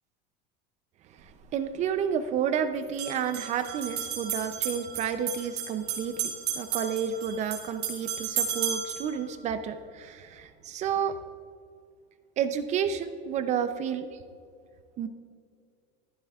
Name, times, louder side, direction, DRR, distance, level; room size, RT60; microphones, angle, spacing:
sound 1, 1.2-1.3 2.8-9.1, right 8 dB, 55° right, 2.6 m, -33 dB
voice 1, 1.5-11.2 12.4-14.1 15.0-15.1, right 8 dB, 35° right, 10 dB, 0.5 m, -30 dB
14.5 x 11.0 x 2.4 m, 2.3 s
cardioid pair, 150°, 20 cm